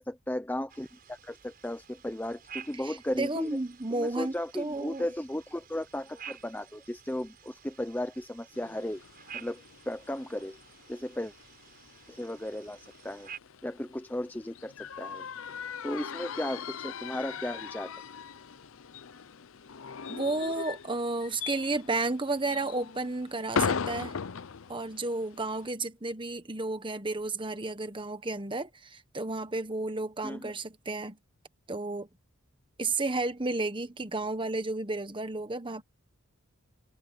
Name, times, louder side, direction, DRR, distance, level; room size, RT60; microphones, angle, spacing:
voice 1, 0.0-3.6 3.9-9.0 9.3-10.6 10.9-11.3 12.1-13.3 13.6-15.2 15.8-17.9 30.2-30.5, left 1 dB, 10° left, 0.7 m, -35 dB
sound 1, 0.7-13.4, right 8 dB, 40° right, 6.1 m, -51 dB
voice 2, 2.8-5.1 20.1-24.2 24.7-31.2 31.7-32.1 32.8-35.8, right 2 dB, 20° right, 1.3 m, -32 dB
sound 2, 8.5-25.7, left 6 dB, 65° left, 0.6 m, -39 dB
head